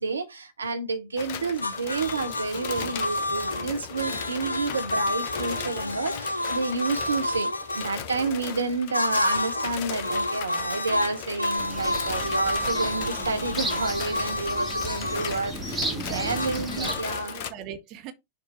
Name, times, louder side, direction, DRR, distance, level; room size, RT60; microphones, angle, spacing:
voice 1, 0.0-17.4, right 3 dB, 75° right, 0.8 m, -30 dB
sound 1, 1.2-17.5, left 7 dB, 50° left, 0.9 m, -37 dB
sound 2, 1.6-7.9 8.9-9.8 10.0-15.4 16.3-17.0, left 1 dB, 80° left, 0.5 m, -30 dB
sound 3, 11.6-17.0, right 1 dB, 5° right, 1.5 m, -34 dB
voice 2, 15.8-18.1, right 8 dB, 40° right, 1.1 m, -41 dB
6.7 x 2.7 x 5.5 m
figure-of-eight pair, 90°, 0 cm